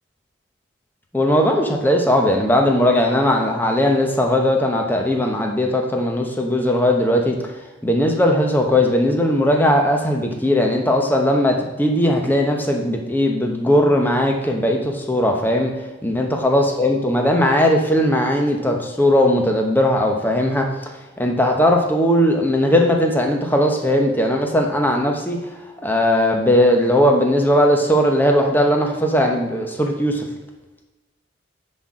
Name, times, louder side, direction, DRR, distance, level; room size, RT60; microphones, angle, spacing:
voice 1, 1.1-7.4 7.8-15.7 16.0-20.9 21.2-25.4 25.8-30.2, left 1 dB, 10° left, 2 dB, 1.0 m, -18 dB
10.0 x 4.3 x 4.9 m, 1.1 s
head